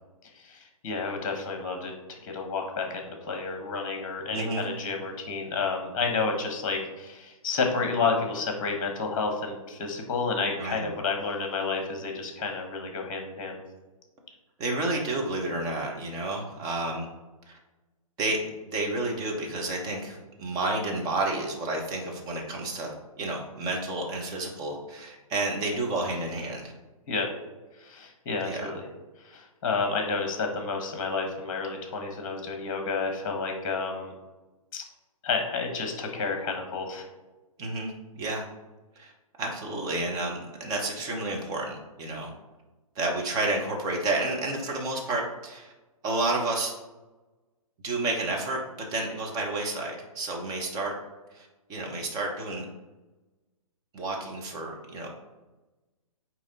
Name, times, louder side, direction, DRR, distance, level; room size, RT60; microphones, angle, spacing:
voice 1, 0.4-13.6 27.1-27.3 27.8-28.8 29.2-34.1 34.7-34.8 35.2-37.1, left 4 dB, 30° left, 4 dB, 1.3 m, -30 dB
voice 2, 4.3-4.7 10.6-10.9 14.6-17.1 17.5-17.6 18.2-22.9 23.2-26.7 28.4-28.7 37.6-38.4 39.0-39.1 39.4-42.3 42.9-45.7 46.0-46.7 47.8-50.9 51.3-52.6 53.9-55.1, right 2 dB, 20° right, 0 dB, 1.2 m, -30 dB
8.8 x 3.0 x 4.0 m, 1.1 s
figure-of-eight pair, 125°, 19 cm